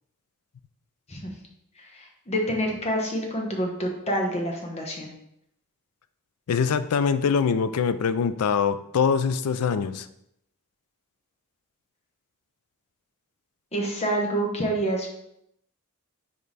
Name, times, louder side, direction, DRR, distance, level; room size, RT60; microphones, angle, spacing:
voice 1, 1.9-5.1 13.7-15.1, right 1 dB, 30° left, 0 dB, 1.1 m, -27 dB
voice 2, 6.5-10.1, left 6 dB, 85° left, 12 dB, 0.4 m, -23 dB
5.2 x 4.4 x 4.0 m, 0.77 s
head